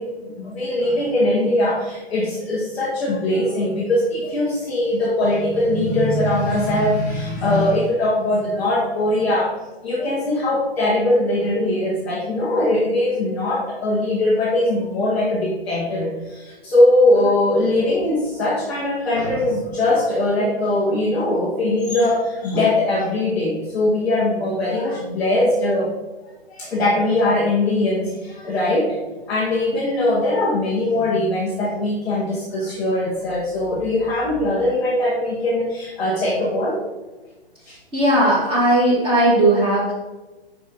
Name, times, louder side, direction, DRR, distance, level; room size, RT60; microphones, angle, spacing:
voice 1, 0.0-9.5 9.8-25.9 26.5-29.0 29.3-36.8 37.7-37.8, left 1 dB, 5° left, -9 dB, 0.3 m, -21 dB
voice 2, 37.9-39.9, right 1 dB, 15° right, -4 dB, 2.1 m, -17 dB
6.0 x 5.2 x 4.1 m, 1.2 s
hypercardioid pair, 135°, 31 cm